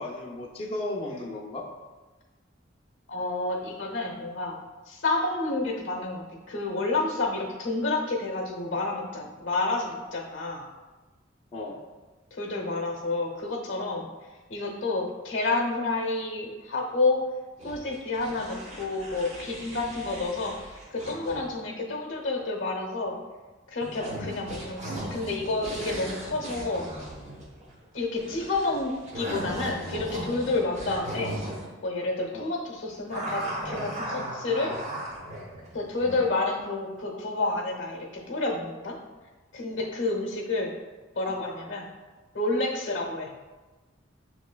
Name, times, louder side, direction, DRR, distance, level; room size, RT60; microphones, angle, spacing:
voice 1, 0.0-1.7 11.5-11.8 32.3-32.5, left 2 dB, 30° left, -4 dB, 0.5 m, -35 dB
voice 2, 3.1-10.7 12.3-14.1 14.5-17.2 17.6-23.2 23.7-26.9 27.9-31.4 31.8-34.7 35.7-39.0 39.5-40.7 41.2-41.9 42.3-43.3, left 2 dB, 70° left, 1 dB, 0.8 m, -29 dB
sound 1, 17.6-21.6 23.8-31.7 33.1-36.3, right 1 dB, 35° right, 0.8 m, -37 dB
6.1 x 3.1 x 2.2 m, 1.2 s
head